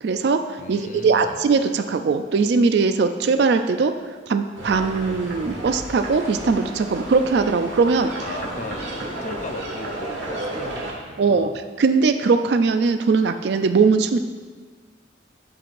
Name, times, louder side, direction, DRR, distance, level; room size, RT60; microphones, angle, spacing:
voice 1, 0.0-4.0 4.3-8.1 11.2-11.5 11.8-14.2, right 4 dB, 65° right, 8 dB, 0.3 m, -20 dB
voice 2, 0.6-1.4 8.2-11.5, left 2 dB, 40° left, 5 dB, 0.6 m, -36 dB
sound 1, 4.5-10.9, right 1 dB, 80° right, 1.3 m, -32 dB
11.5 x 4.7 x 2.5 m, 1.5 s
head